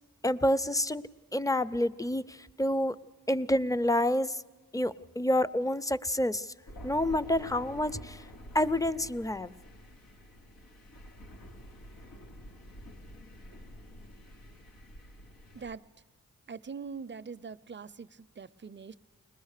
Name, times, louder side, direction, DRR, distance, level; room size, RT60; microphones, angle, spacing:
voice 1, 0.2-1.0 1.3-3.0 3.3-4.4 4.7-6.5 6.8-8.2 8.5-9.5, left 1 dB, 10° left, 16 dB, 0.6 m, -28 dB
Thunder, 6.7-15.8, equal, 85° left, 1.6 m, -49 dB
voice 2, 16.5-18.9, right 5 dB, 35° right, 14 dB, 0.6 m, -42 dB
21.5 x 20.0 x 6.6 m, 1.2 s
cardioid pair, 55°, 35 cm